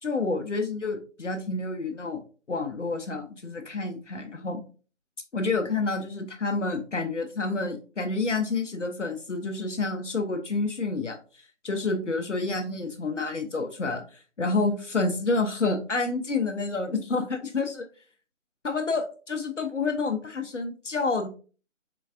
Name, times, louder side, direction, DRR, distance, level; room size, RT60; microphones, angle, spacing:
voice 1, 0.0-4.6 5.3-17.8 18.6-21.3, left 3 dB, 70° left, 5 dB, 0.7 m, -29 dB
3.8 x 3.4 x 2.4 m, 0.37 s
figure-of-eight pair, 165°, 38 cm